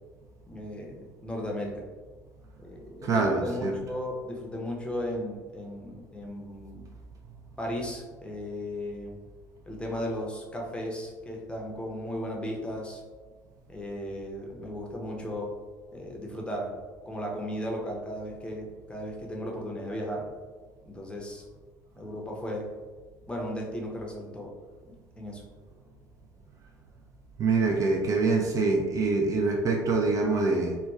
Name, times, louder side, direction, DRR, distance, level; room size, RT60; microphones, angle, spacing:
voice 1, 0.5-1.8 2.6-6.9 7.6-9.1 9.7-13.0 13.7-15.5 15.9-16.7 17.1-20.3 20.8-21.4 21.9-22.7 23.3-24.5 25.2-25.4, equal, 10° left, -1 dB, 0.6 m, -35 dB
voice 2, 3.0-3.7 27.4-30.8, right 3 dB, 35° right, 0 dB, 0.4 m, -25 dB
3.0 x 2.2 x 2.3 m, 1.4 s
hypercardioid pair, 65°, 9 cm